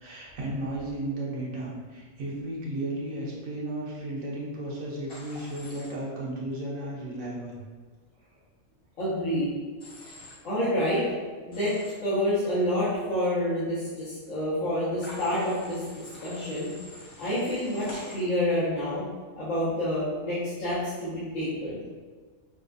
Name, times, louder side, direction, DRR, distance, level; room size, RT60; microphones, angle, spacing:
voice 1, 0.0-7.6, right 1 dB, 85° right, -4 dB, 1.3 m, -34 dB
Human voice / Train, 5.1-5.9 9.8-10.4 11.5-11.9 15.0-18.1, left 1 dB, 50° left, 0.9 m, -46 dB
voice 2, 9.0-9.5 10.4-11.0 11.4-11.7 12.0-15.8 16.2-16.7 17.2-19.0 19.4-21.8, equal, 80° left, -13 dB, 1.5 m, -28 dB
5.7 x 2.3 x 2.6 m, 1.4 s
omnidirectional pair, 1.4 m